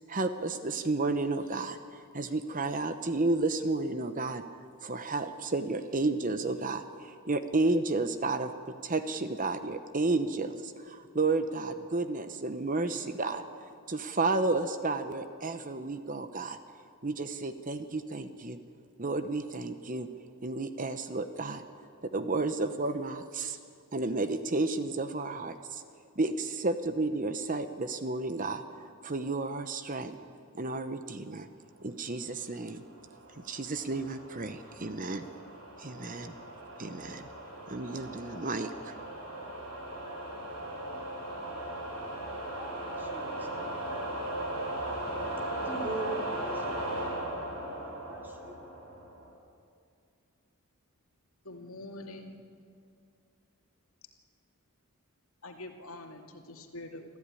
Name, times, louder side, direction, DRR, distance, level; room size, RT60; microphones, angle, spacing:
voice 1, 0.1-1.8 2.1-4.4 4.8-8.5 8.8-13.4 13.9-16.6 17.0-18.6 19.0-20.1 20.4-21.6 22.0-23.6 23.9-25.8 26.2-28.6 29.0-30.2 30.6-31.5 31.8-32.8 33.4-35.2 35.8-36.3 36.8-37.2 37.7-38.7, right 3 dB, 40° right, 0.9 m, -32 dB
sound 1, 32.8-49.3, right 1 dB, 90° right, 7.1 m, -38 dB
voice 2, 42.4-44.0 45.6-47.1 47.8-48.6, right 2 dB, 10° right, 2.8 m, -43 dB
voice 3, 51.4-52.4 55.4-57.0, left 2 dB, 70° left, 2.5 m, -44 dB
25.5 x 14.5 x 9.9 m
head